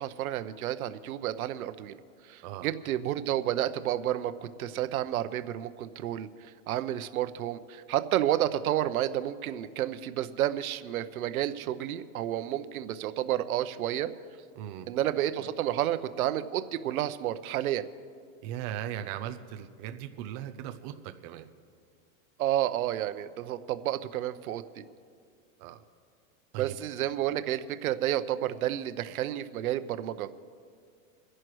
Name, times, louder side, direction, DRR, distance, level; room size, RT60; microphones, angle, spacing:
voice 1, 0.0-2.0 2.2-14.1 14.9-17.9 22.4-24.8 26.6-30.3, right 12 dB, 90° right, 12 dB, 0.9 m, -30 dB
voice 2, 14.6-14.9 18.4-20.9 21.2-21.5 25.6-25.8 26.5-26.8, right 11 dB, 30° right, 7 dB, 0.5 m, -38 dB
29.5 x 11.0 x 3.1 m, 2.3 s
supercardioid pair, 160°, 42 cm